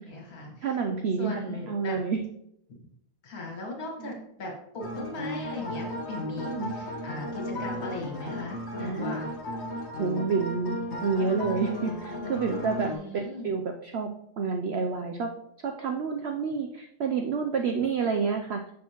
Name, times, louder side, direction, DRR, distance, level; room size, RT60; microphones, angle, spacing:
voice 1, 0.1-0.6 1.2-2.0 3.2-9.3 12.8-13.5, left 2 dB, 70° left, 0 dB, 2.1 m, -38 dB
voice 2, 0.6-2.2 4.0-4.2 6.4-6.7 8.8-9.2 10.0-14.1 14.4-15.3 15.6-18.6, right 5 dB, 70° right, 4 dB, 0.6 m, -29 dB
sound 1, 4.8-13.0, left 1 dB, 50° left, 1.1 m, -35 dB
6.3 x 5.9 x 2.9 m, 0.76 s
omnidirectional pair, 1.6 m